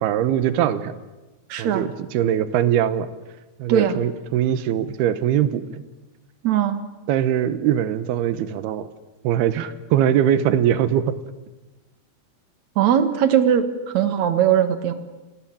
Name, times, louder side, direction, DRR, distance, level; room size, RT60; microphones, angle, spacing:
voice 1, 0.0-1.0 1.6-3.1 3.6-5.8 7.1-8.9 9.2-11.2, right 10 dB, 80° right, 14 dB, 3.0 m, -21 dB
voice 2, 1.5-1.9 3.7-4.0 6.4-6.8 12.8-13.7 13.9-14.9, right 9 dB, 55° right, 10 dB, 2.4 m, -19 dB
29.0 x 19.0 x 8.7 m, 1.1 s
omnidirectional pair, 4.6 m